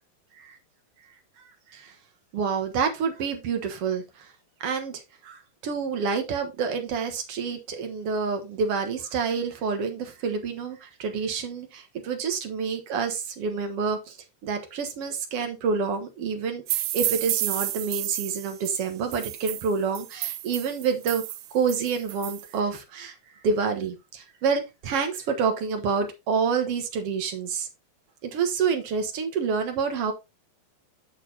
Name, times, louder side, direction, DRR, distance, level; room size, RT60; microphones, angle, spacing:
voice 1, 2.3-4.3 4.6-14.2 14.4-21.2 21.5-23.2 23.4-27.7 28.2-30.1, right 5 dB, 55° right, 1.9 m, -28 dB
sound 1, 16.7-22.5, right 15 dB, 80° right, 2.0 m, -31 dB
8.5 x 6.6 x 2.8 m
omnidirectional pair, 3.9 m